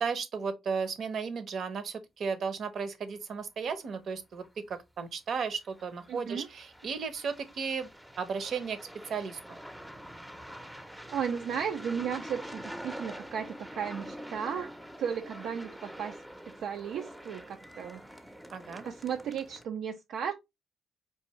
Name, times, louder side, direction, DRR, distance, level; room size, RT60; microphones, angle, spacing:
voice 1, 0.0-7.9 8.2-9.6 18.5-18.9, right 5 dB, 60° right, 0.8 m, -35 dB
sound 1, 3.8-3.9 4.4-4.5 5.5-19.6, equal, 5° right, 0.6 m, -46 dB
voice 2, 6.1-6.5 11.1-14.7 15.0-16.2 16.4-18.0 18.8-20.3, right 7 dB, 75° right, 0.4 m, -35 dB
4.6 x 2.5 x 3.0 m
cardioid pair, 90°, 0 cm